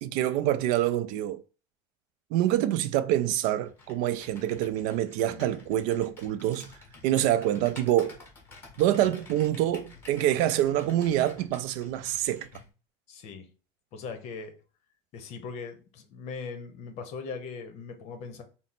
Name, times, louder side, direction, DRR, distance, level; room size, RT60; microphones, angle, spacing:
voice 1, 0.0-1.4 2.3-6.7 7.0-8.2 8.8-12.5, right 12 dB, 65° right, 0.4 m, -26 dB
Computer keyboard, 3.6-12.7, left 3 dB, 15° left, 1.3 m, -50 dB
voice 2, 13.1-13.5 13.9-14.6 15.1-18.4, left 5 dB, 50° left, 0.8 m, -40 dB
4.2 x 2.0 x 4.0 m
cardioid pair, 160°, 15 cm